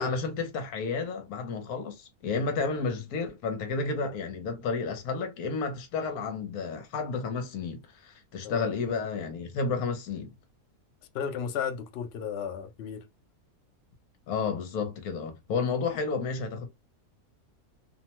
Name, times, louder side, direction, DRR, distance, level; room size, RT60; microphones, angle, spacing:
voice 1, 0.0-10.3 14.3-16.7, left 4 dB, 70° left, 1.2 m, -31 dB
voice 2, 11.1-13.1, left 7 dB, 85° left, 0.5 m, -34 dB
2.9 x 2.1 x 2.9 m
omnidirectional pair, 1.7 m